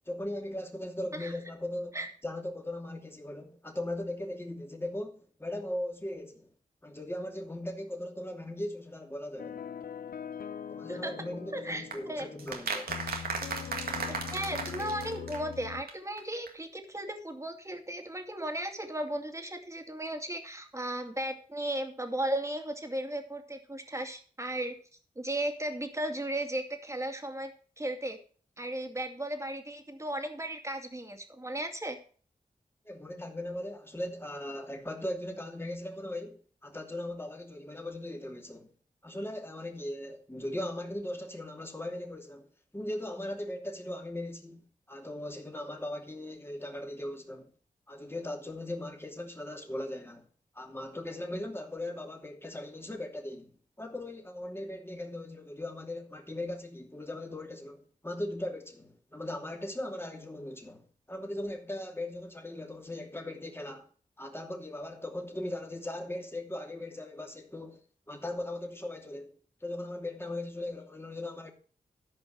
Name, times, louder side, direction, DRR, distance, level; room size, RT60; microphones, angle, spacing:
voice 1, 0.0-6.5 6.8-9.6 10.7-12.9 32.8-38.7 39.0-42.5 42.7-44.6 44.9-47.5 47.9-50.3 50.5-63.9 64.2-67.8 68.1-69.3 69.6-71.5, left 1 dB, 15° left, 2.7 m, -38 dB
sound 1, 9.4-15.8, left 8 dB, 70° left, 0.6 m, -42 dB
voice 2, 11.5-12.3 14.1-24.7 25.2-27.5 27.8-28.2 28.6-32.0, right 1 dB, 20° right, 2.4 m, -35 dB
sound 2, 11.9-15.6 15.9-16.0 16.2-16.3 16.5-16.6, right 4 dB, 90° right, 1.8 m, -36 dB
13.5 x 5.3 x 6.2 m
cardioid pair, 50°, 15 cm